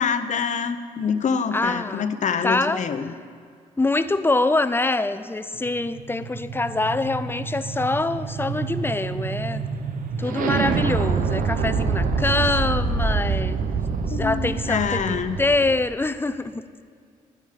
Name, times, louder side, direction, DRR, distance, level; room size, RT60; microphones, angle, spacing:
voice 1, 0.0-3.1 14.1-15.4, left 6 dB, 60° left, 10 dB, 0.7 m, -25 dB
voice 2, 1.5-2.1 2.4-2.8 3.8-9.6 10.2-13.6 14.1-16.6, left 2 dB, 15° left, 13 dB, 0.5 m, -24 dB
sound 1, 5.7-15.8, right 5 dB, 80° right, 0.8 m, -26 dB
11.5 x 9.5 x 5.1 m, 2.2 s
cardioid pair, 70°, 14 cm